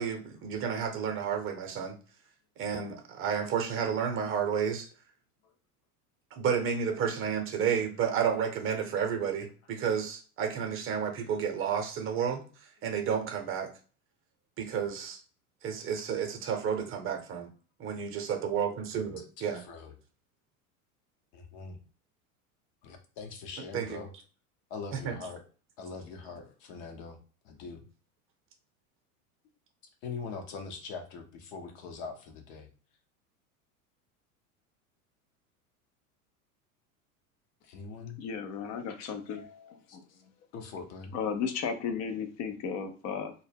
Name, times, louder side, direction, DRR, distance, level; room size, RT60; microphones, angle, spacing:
voice 1, 0.0-1.9 2.6-4.9 6.3-12.4 12.8-13.7 14.6-15.2 15.6-17.5 17.8-19.6 23.7-24.0 24.9-25.2, right 7 dB, 30° right, 0.7 m, -31 dB
voice 2, 19.2-20.0 21.3-21.8 22.8-24.1 24.7-25.4 25.8-27.2 27.4-27.8 30.0-32.7 37.6-38.2 39.9-40.2 40.5-41.2, left 5 dB, 60° left, 0.8 m, -42 dB
voice 3, 38.2-40.0 41.1-43.3, left 6 dB, 40° left, 0.5 m, -35 dB
2.2 x 2.0 x 3.3 m
hypercardioid pair, 90°, 44 cm